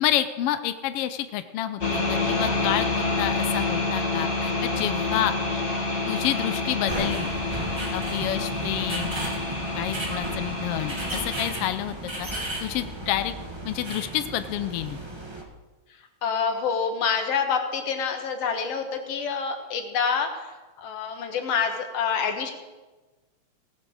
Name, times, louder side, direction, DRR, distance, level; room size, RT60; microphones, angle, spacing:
voice 1, 0.0-5.3 6.1-7.3 7.9-9.2 9.8-12.3 12.6-13.3 13.6-15.0, left 12 dB, 80° left, 10 dB, 1.3 m, -29 dB
sound 1, 1.8-11.5, left 3 dB, 35° left, 1.3 m, -28 dB
sound 2, 6.9-15.4, right 1 dB, 20° right, 0.7 m, -34 dB
voice 2, 16.2-20.5 20.8-22.5, left 6 dB, 60° left, 5 dB, 2.3 m, -27 dB
17.5 x 7.4 x 6.4 m, 1.2 s
omnidirectional pair, 3.3 m